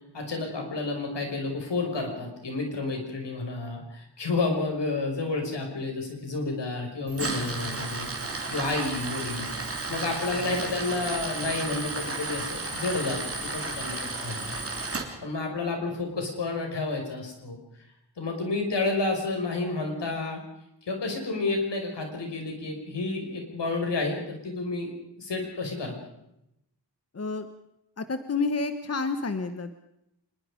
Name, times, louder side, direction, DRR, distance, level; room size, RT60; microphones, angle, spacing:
voice 1, 0.1-8.1 8.5-14.6 15.2-17.6 18.2-20.4 20.9-26.0, left 3 dB, 75° left, 2 dB, 5.9 m, -30 dB
Tools, 7.1-15.0, right 3 dB, 30° right, 3.3 m, -33 dB
voice 2, 27.1-27.5 28.0-29.7, left 4 dB, 35° left, 10 dB, 1.1 m, -29 dB
25.0 x 21.5 x 5.1 m, 0.82 s
wide cardioid pair, 140°, 42 cm